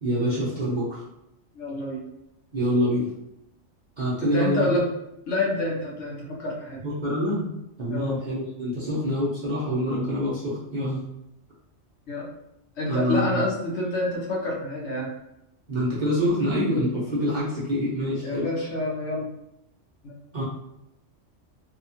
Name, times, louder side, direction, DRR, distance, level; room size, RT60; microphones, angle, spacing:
voice 1, 0.0-1.0 2.5-3.1 4.0-4.7 6.8-7.5 7.8-11.0 12.9-13.4 15.7-18.5 20.3-20.4, equal, 45° right, -8 dB, 0.7 m, -26 dB
voice 2, 1.5-2.0 4.2-4.9 5.3-6.8 7.9-8.2 12.1-12.3 12.8-15.1 18.2-19.3 20.0-20.4, left 2 dB, 65° left, -4 dB, 1.0 m, -28 dB
2.8 x 2.3 x 2.7 m, 0.84 s
omnidirectional pair, 1.3 m